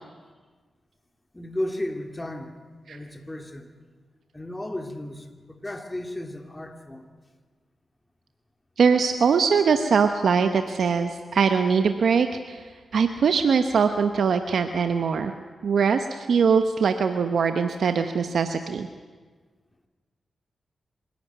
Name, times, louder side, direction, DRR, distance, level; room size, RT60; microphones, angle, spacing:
voice 1, 1.3-2.6 2.9-3.7 4.3-7.1, left 1 dB, 20° left, 5 dB, 2.5 m, -34 dB
voice 2, 8.8-12.6 12.9-15.3 15.6-18.9, right 6 dB, 75° right, 7 dB, 0.9 m, -22 dB
26.0 x 11.5 x 9.3 m, 1.5 s
cardioid pair, 55°, 0 cm